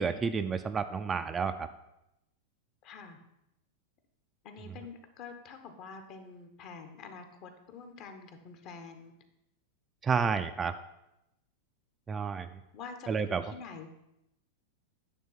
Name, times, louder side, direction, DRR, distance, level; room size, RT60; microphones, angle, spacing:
voice 1, 0.0-1.7 10.0-10.7 12.1-12.5 13.1-13.4, right 5 dB, 20° right, 9 dB, 0.4 m, -30 dB
voice 2, 2.8-3.2 4.4-9.1 12.7-13.9, left 5 dB, 45° left, 7 dB, 1.1 m, -47 dB
9.5 x 3.4 x 5.7 m, 0.87 s
hypercardioid pair, 100°, 0 cm